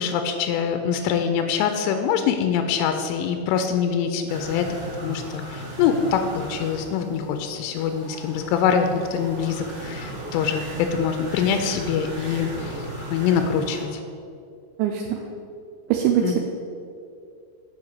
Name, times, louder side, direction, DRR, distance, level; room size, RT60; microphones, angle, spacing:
voice 1, 0.0-4.7 5.0-14.0 16.2-16.4, left 7 dB, 90° left, 6 dB, 3.1 m, -24 dB
sound 1, 4.3-13.8, right 1 dB, 55° right, 1.4 m, -36 dB
voice 2, 14.8-15.2 15.9-16.4, right 9 dB, 85° right, 2 dB, 2.8 m, -22 dB
7.1 x 5.2 x 6.5 m, 2.5 s
omnidirectional pair, 5.5 m